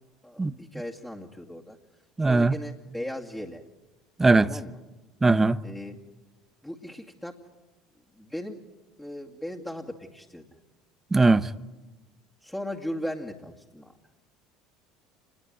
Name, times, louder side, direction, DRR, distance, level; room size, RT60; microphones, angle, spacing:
voice 1, 0.2-1.8 2.2-3.6 4.4-4.8 5.6-6.0 6.6-7.4 8.1-8.6 9.0-10.4 12.4-13.9, left 1 dB, 5° left, 2.4 m, -37 dB
voice 2, 2.2-2.6 4.2-4.5 5.2-5.6 11.1-11.5, right 3 dB, 15° right, 0.9 m, -20 dB
28.5 x 21.0 x 9.3 m
figure-of-eight pair, 65°, 2 cm